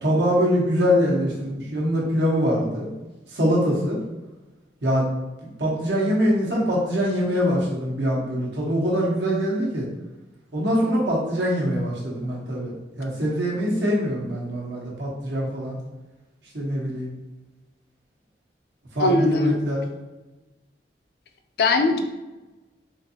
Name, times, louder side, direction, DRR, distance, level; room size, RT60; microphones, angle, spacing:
voice 1, 0.0-2.9 3.3-4.0 4.8-5.1 5.6-9.9 10.5-12.7 13.0-15.8 16.5-17.1 18.9-19.8, equal, 85° right, -4 dB, 1.1 m, -23 dB
voice 2, 19.0-19.6 21.6-22.0, left 3 dB, 60° left, 6 dB, 0.4 m, -20 dB
3.8 x 2.6 x 2.7 m, 1.1 s
head